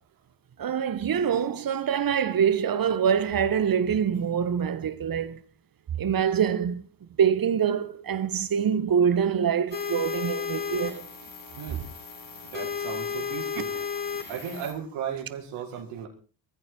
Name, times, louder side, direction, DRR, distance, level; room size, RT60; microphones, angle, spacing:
voice 1, 0.6-5.4 6.0-6.8 7.2-11.1 14.1-14.3, right 8 dB, 45° right, 1.7 m, -25 dB
sound 1, 9.7-14.7, left 6 dB, 40° left, 5.2 m, -34 dB
voice 2, 12.4-13.7 14.3-16.1, right 8 dB, 70° right, 5.5 m, -36 dB
20.0 x 14.5 x 4.7 m
figure-of-eight pair, 40°, 48 cm